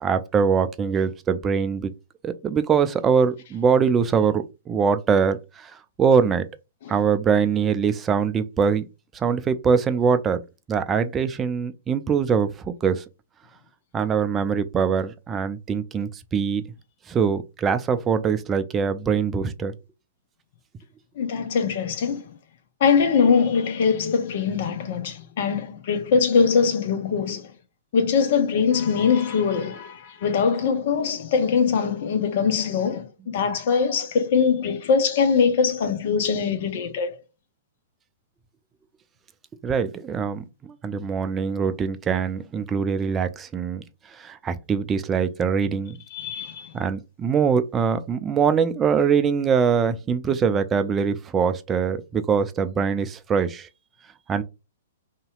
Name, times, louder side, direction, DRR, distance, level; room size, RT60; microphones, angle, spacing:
voice 1, 0.0-1.9 2.2-6.5 6.9-8.8 9.1-10.4 10.7-13.0 13.9-16.6 17.1-19.7 39.6-40.4 40.8-43.8 44.1-46.0 46.7-53.7 54.3-54.4, right 6 dB, 20° right, 0.4 m, -23 dB
voice 2, 21.2-22.3 22.8-27.5 27.9-37.1 46.1-46.7, left 6 dB, 55° left, 0.7 m, -22 dB
2.9 x 2.7 x 2.3 m
figure-of-eight pair, 115°, 0 cm